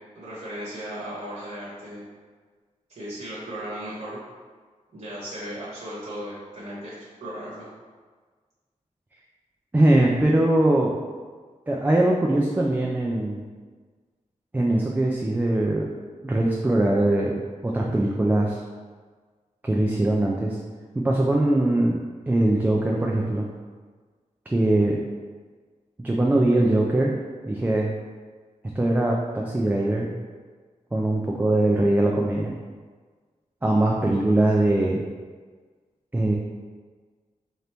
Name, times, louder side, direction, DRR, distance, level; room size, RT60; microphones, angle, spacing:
voice 1, 0.1-2.0 2.9-4.2 4.9-7.7, right 1 dB, 55° right, -9 dB, 1.0 m, -36 dB
voice 2, 9.7-10.9 11.7-13.4 14.5-15.9 16.2-17.4 17.6-18.6 19.6-20.6 21.0-22.0 22.3-23.5 24.5-25.0 26.0-27.1 27.5-27.9 28.8-30.1 30.9-32.5 33.6-35.0 36.1-36.3, right 1 dB, 15° right, -2 dB, 0.3 m, -21 dB
3.8 x 2.9 x 3.4 m, 1.5 s
wide cardioid pair, 130°, 13 cm